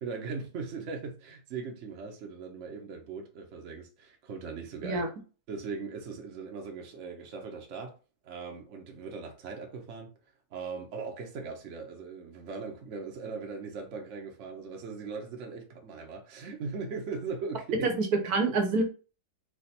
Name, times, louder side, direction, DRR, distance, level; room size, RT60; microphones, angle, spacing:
voice 1, 0.0-5.0 5.5-8.0 8.2-10.1 10.5-17.9, right 4 dB, 55° right, 1.1 m, -39 dB
voice 2, 17.8-18.8, right 3 dB, 75° right, 1.3 m, -26 dB
4.8 x 2.4 x 4.2 m
omnidirectional pair, 1.6 m